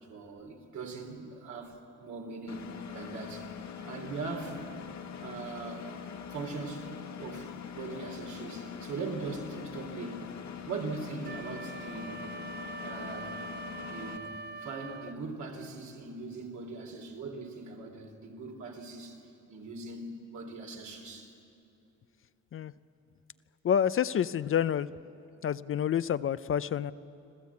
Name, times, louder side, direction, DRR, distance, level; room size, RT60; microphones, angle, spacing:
voice 1, 0.0-3.5 3.8-4.6 5.2-6.9 7.2-10.4 10.6-12.3 12.8-13.5 13.8-19.2 19.5-21.3, right 3 dB, 70° right, 2 dB, 3.4 m, -41 dB
Engine, 2.5-14.2, left 8 dB, 65° left, 1.7 m, -43 dB
Wind instrument woodwind instrument, 11.2-15.2, right 3 dB, 35° right, 0.5 m, -43 dB
voice 2, 23.6-24.9 25.4-26.9, left 9 dB, 45° left, 15 dB, 0.5 m, -28 dB
26.5 x 14.5 x 8.4 m, 2.7 s
cardioid pair, 90°, 30 cm